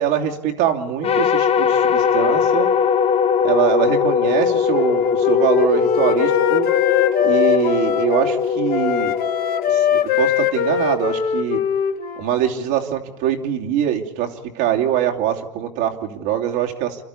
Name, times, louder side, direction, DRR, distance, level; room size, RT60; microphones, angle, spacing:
voice 1, 0.0-2.7 3.4-6.7 7.2-9.1 9.7-11.6 12.1-17.0, right 10 dB, 60° right, 1 dB, 2.8 m, -23 dB
sound 1, 1.0-10.3, left 7 dB, 30° left, 1.1 m, -20 dB
Wind instrument woodwind instrument, 4.7-8.4 8.7-12.3, left 9 dB, 45° left, 1.9 m, -21 dB
28.5 x 13.0 x 8.6 m, 1.1 s
hypercardioid pair, 100°, 21 cm